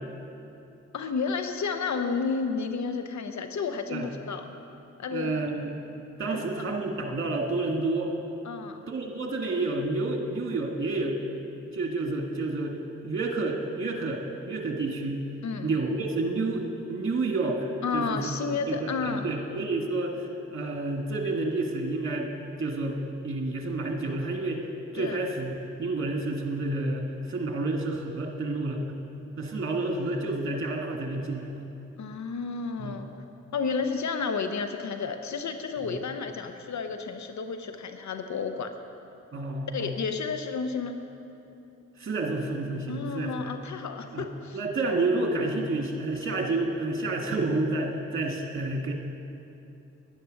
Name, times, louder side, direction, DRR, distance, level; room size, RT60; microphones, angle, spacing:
voice 1, 0.9-4.4 5.0-5.4 6.3-6.5 8.4-8.8 15.4-15.7 17.8-19.3 25.0-25.2 32.0-33.1 33.5-38.7 39.7-41.0 42.9-44.6, left 5 dB, 70° left, 7 dB, 0.8 m, -31 dB
voice 2, 5.1-5.8 6.2-8.1 8.9-11.2 11.7-12.8 13.0-15.2 15.6-18.3 18.7-22.3 22.6-23.0 23.2-24.6 24.9-28.9 29.4-31.5 32.8-33.0 35.8-36.0 39.3-39.9 42.0-43.5 44.1-44.3 44.5-48.9, right 2 dB, 45° right, 2 dB, 1.7 m, -29 dB
10.0 x 10.0 x 6.4 m, 2.8 s
cardioid pair, 45°, 30 cm